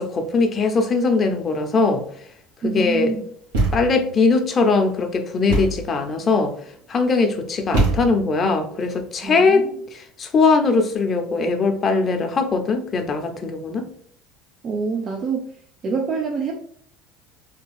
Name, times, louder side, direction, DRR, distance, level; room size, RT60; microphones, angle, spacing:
voice 1, 0.0-2.0 2.6-3.1 3.7-6.5 6.9-9.6 10.2-13.9, left 4 dB, 35° left, 0.7 m, -20 dB
voice 2, 2.6-3.3 9.2-9.8 14.6-15.6 15.8-16.6, right 4 dB, 45° right, 0.5 m, -26 dB
Thump thud, 3.5-4.1 5.5-5.9 7.7-8.4, right 3 dB, 85° right, 1.3 m, -22 dB
3.5 x 2.3 x 3.3 m
supercardioid pair, 90°, 0 cm